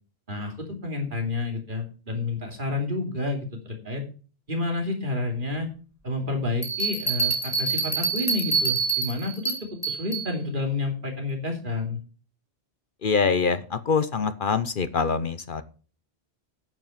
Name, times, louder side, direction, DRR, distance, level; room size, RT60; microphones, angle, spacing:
voice 1, 0.3-4.0 4.5-5.7 6.0-12.0, left 2 dB, 50° right, 2 dB, 3.0 m, -30 dB
sound 1, 6.6-10.3, right 4 dB, 15° left, 3.0 m, -26 dB
voice 2, 13.0-15.6, left 5 dB, 55° left, 13 dB, 0.9 m, -24 dB
9.2 x 8.1 x 5.8 m, 0.37 s
omnidirectional pair, 1.1 m